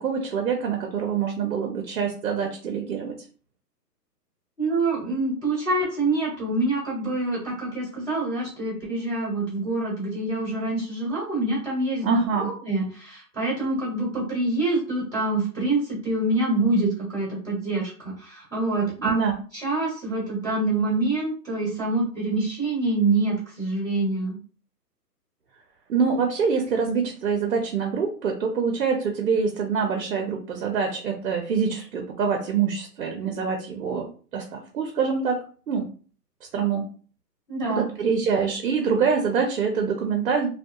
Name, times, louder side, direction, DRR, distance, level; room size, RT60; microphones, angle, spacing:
voice 1, 0.0-3.2 12.0-12.5 19.0-19.3 25.9-35.9 36.5-36.9 37.7-40.5, right 6 dB, 60° right, 3 dB, 0.6 m, -25 dB
voice 2, 4.6-19.1 19.5-24.4 37.5-37.9, right 2 dB, 10° left, -19 dB, 0.7 m, -26 dB
2.6 x 2.2 x 2.2 m, 0.41 s
hypercardioid pair, 170°, 50 cm